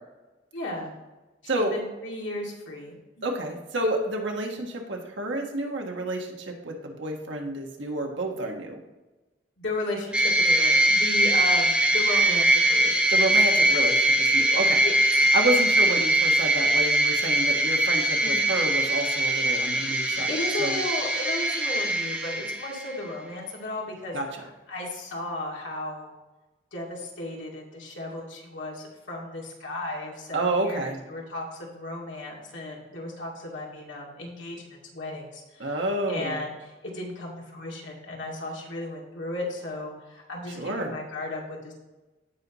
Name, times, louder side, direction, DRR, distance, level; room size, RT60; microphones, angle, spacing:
voice 1, 0.5-0.9 1.4-3.3 9.6-13.1 14.8-15.0 18.2-18.4 19.8-19.9 20.3-26.1 26.7-41.7, left 2 dB, 85° left, -3 dB, 2.4 m, -35 dB
voice 2, 3.2-8.8 13.1-14.8 15.3-20.8 24.1-24.2 30.3-31.0 35.6-36.4 40.5-40.9, right 1 dB, 80° right, 1 dB, 1.5 m, -29 dB
sound 1, 10.1-23.0, right 1 dB, 5° right, 1.0 m, -22 dB
16.0 x 5.5 x 3.0 m, 1.1 s
head